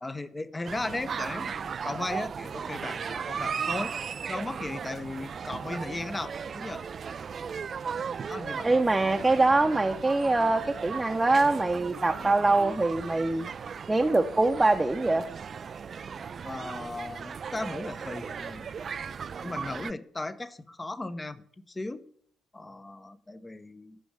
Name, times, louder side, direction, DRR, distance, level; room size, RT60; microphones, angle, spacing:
voice 1, 0.0-4.0 4.3-6.8 8.3-8.8 16.4-18.7 19.4-22.0 22.5-24.0, left 2 dB, 20° left, 13 dB, 0.9 m, -36 dB
sound 1, 0.6-19.9, right 6 dB, 45° right, 0.4 m, -36 dB
voice 2, 8.6-13.5 13.9-15.3, right 2 dB, 15° right, 3 dB, 0.8 m, -24 dB
11.5 x 6.3 x 8.5 m, 0.63 s
figure-of-eight pair, 45°, 0 cm